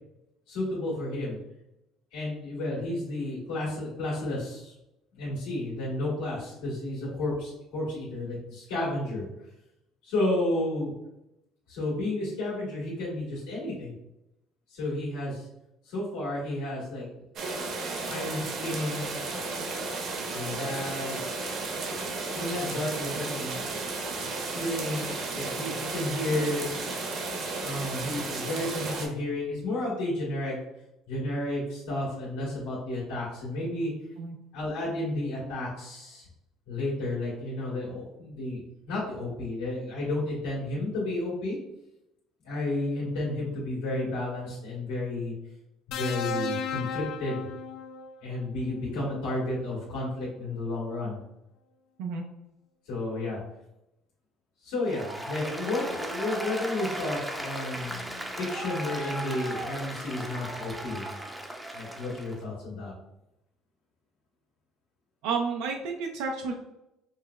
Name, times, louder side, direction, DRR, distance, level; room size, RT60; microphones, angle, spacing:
voice 1, 0.5-1.4 2.1-4.7 5.1-9.3 10.0-10.9 11.7-13.9 14.7-15.5 15.8-17.0 18.1-19.1 20.3-21.4 22.3-23.8 24.0-26.7 27.6-30.5 31.1-33.9 34.5-36.2 36.7-38.6 38.9-41.6 42.4-45.3 45.9-47.4 48.2-51.2 52.9-53.4 54.6-58.0 58.4-61.2 61.7-62.9, left 2 dB, 85° left, -7 dB, 1.4 m, -32 dB
sound 1, 17.4-29.1, right 3 dB, 60° right, 0.8 m, -33 dB
sound 2, 45.9-48.2 49.5-49.7, left 5 dB, 65° left, 0.3 m, -34 dB
Applause, 54.9-62.4, right 1 dB, 10° right, 0.5 m, -36 dB
voice 2, 65.2-66.5, right 5 dB, 85° right, 2 dB, 0.4 m, -31 dB
5.3 x 2.0 x 2.3 m, 0.88 s
cardioid pair, 110°, 0 cm